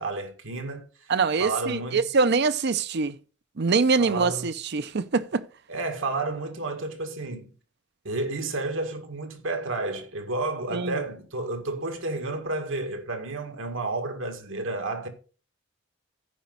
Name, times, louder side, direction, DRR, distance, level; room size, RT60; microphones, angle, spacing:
voice 1, 0.0-1.1 1.4-2.1 4.0-4.5 5.7-7.5 8.0-15.1, right 2 dB, 80° right, 1.9 m, -31 dB
voice 2, 1.1-3.1 3.6-5.4 10.7-11.0, right 4 dB, 55° right, 0.6 m, -24 dB
14.5 x 5.3 x 4.0 m
head